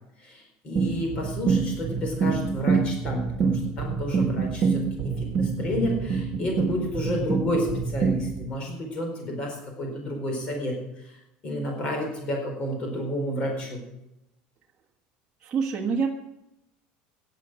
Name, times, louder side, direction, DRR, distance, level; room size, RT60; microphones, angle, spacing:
voice 1, 0.2-13.8, equal, 30° left, 2 dB, 4.5 m, -31 dB
sound 1, 0.8-8.5, right 5 dB, 35° right, 1.6 m, -26 dB
voice 2, 15.4-16.1, right 5 dB, 20° right, -5 dB, 1.4 m, -26 dB
15.0 x 10.5 x 6.3 m, 0.89 s
cardioid pair, 165°, 4 cm